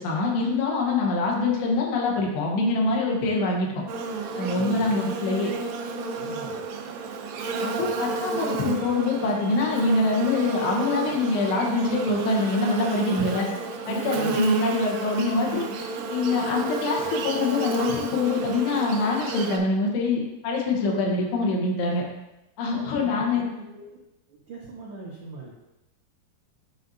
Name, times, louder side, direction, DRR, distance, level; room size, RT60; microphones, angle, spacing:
voice 1, 0.0-3.7 4.4-5.5 7.6-13.5 13.9-15.7 16.1-22.0 22.6-23.4, left 3 dB, 85° left, -2 dB, 3.4 m, -24 dB
Buzz, 3.9-19.6, right 4 dB, 90° right, 1.9 m, -31 dB
voice 2, 4.5-5.3 6.2-6.6 13.1-13.3 14.1-14.4 22.7-24.0 24.3-25.5, right 3 dB, 75° right, -6 dB, 1.4 m, -40 dB
11.0 x 4.2 x 2.7 m, 0.96 s
omnidirectional pair, 4.8 m